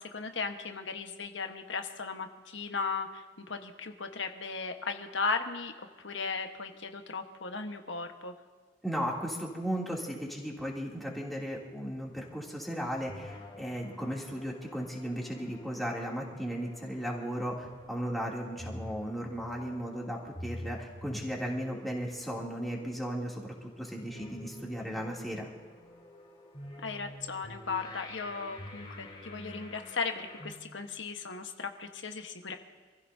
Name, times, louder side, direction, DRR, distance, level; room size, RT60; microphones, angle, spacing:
voice 1, 0.0-5.7 6.0-8.3 26.8-32.5, left 4 dB, 90° left, 5 dB, 1.4 m, -36 dB
voice 2, 8.8-25.5, equal, ahead, -3 dB, 3.0 m, -36 dB
sound 1, 12.2-30.5, left 1 dB, 25° left, 2.7 m, -48 dB
27.5 x 15.5 x 2.8 m, 1.6 s
head